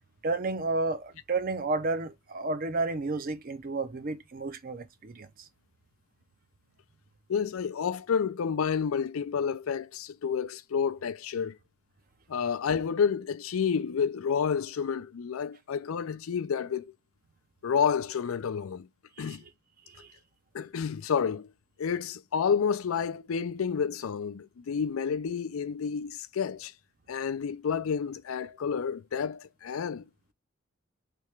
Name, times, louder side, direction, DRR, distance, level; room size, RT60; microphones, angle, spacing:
voice 1, 0.2-5.5 19.2-19.5 19.9-20.1, right 3 dB, 45° right, 0.6 m, -32 dB
voice 2, 7.3-11.6 12.3-16.9 17.6-18.9 19.2-19.4 20.5-21.5 21.8-26.7 27.1-30.1, left 6 dB, 80° left, 0.4 m, -30 dB
3.4 x 2.9 x 3.2 m
head